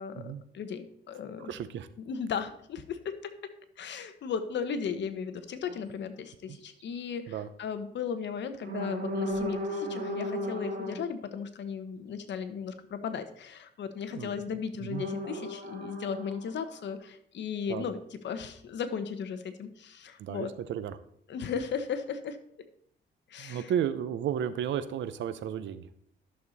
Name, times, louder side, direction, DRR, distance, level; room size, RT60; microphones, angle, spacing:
voice 1, 0.5-1.5 2.0-3.5 3.8-20.5 21.3-22.4 23.3-23.7, left 6 dB, 65° left, 10 dB, 1.1 m, -36 dB
voice 2, 1.4-1.9 6.5-6.6 7.3-7.5 14.1-14.3 14.8-15.1 17.7-17.9 20.2-21.0 23.4-25.9, right 9 dB, 70° right, 12 dB, 0.8 m, -33 dB
sound 1, 5.6-5.8 6.8-7.0 8.6-11.0 14.9-16.9, equal, 55° right, 4.0 m, -35 dB
11.5 x 6.6 x 4.1 m, 0.68 s
cardioid pair, 90°, 20 cm